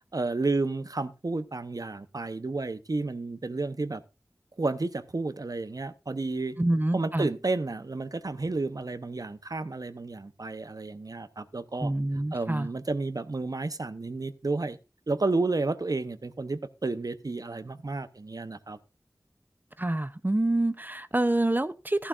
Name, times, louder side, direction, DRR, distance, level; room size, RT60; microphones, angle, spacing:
voice 1, 0.1-4.0 4.6-6.6 6.9-11.9 12.3-14.8 15.1-18.8, right 3 dB, 60° right, 0.8 m, -31 dB
voice 2, 6.6-7.3 11.8-12.7 19.8-22.1, right 1 dB, 25° right, 0.6 m, -27 dB
14.5 x 11.0 x 2.5 m
wide cardioid pair, 40°, 7 cm